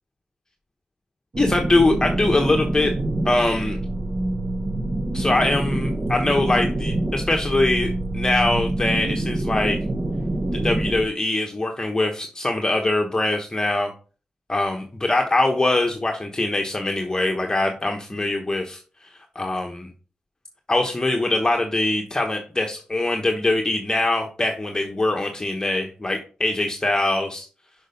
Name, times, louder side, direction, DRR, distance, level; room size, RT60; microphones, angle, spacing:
sound 1, 1.3-11.1, right 1 dB, 35° right, 1.0 m, -26 dB
voice 1, 1.4-2.9 3.2-3.8 5.1-9.8 10.5-13.9 14.5-18.8 19.3-19.9 20.7-27.5, left 2 dB, 25° left, 2 dB, 1.1 m, -22 dB
6.4 x 5.6 x 5.3 m, 0.38 s
cardioid pair, 75°, 3 cm